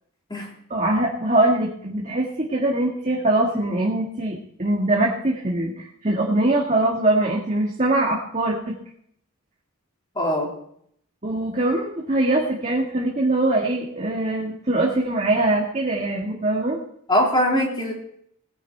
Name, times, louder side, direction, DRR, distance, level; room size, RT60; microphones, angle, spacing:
voice 1, 0.7-8.8 11.2-16.8, right 2 dB, 35° right, -2 dB, 1.8 m, -22 dB
voice 2, 10.2-10.5 17.1-17.9, equal, 20° left, -2 dB, 3.6 m, -21 dB
18.5 x 10.0 x 4.4 m, 0.66 s
head